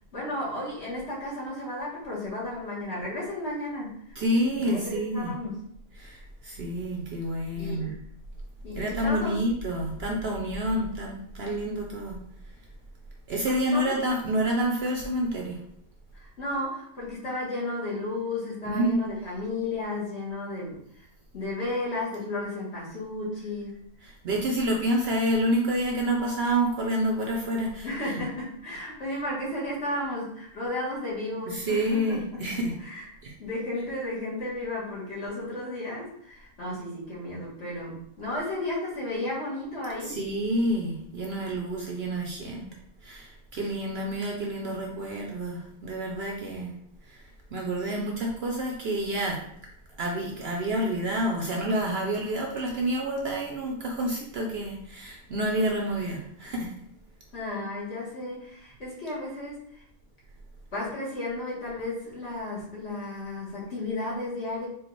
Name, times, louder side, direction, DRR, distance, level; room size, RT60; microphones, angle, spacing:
voice 1, 0.1-4.2 4.6-5.6 7.6-7.9 8.6-9.4 13.4-14.0 16.1-21.1 21.3-23.8 27.8-32.2 32.8-33.0 33.4-40.2 57.3-59.8 60.7-64.7, left 2 dB, 55° left, -6 dB, 1.7 m, -33 dB
voice 2, 4.2-5.3 6.0-7.9 8.7-12.2 13.3-15.6 18.6-19.0 24.0-27.9 31.5-32.7 33.2-33.3 40.0-42.7 43.0-46.7 47.1-47.2 47.5-49.5 50.0-56.7, right 1 dB, 60° right, 0 dB, 0.7 m, -28 dB
4.5 x 2.4 x 3.1 m, 0.68 s
omnidirectional pair, 1.4 m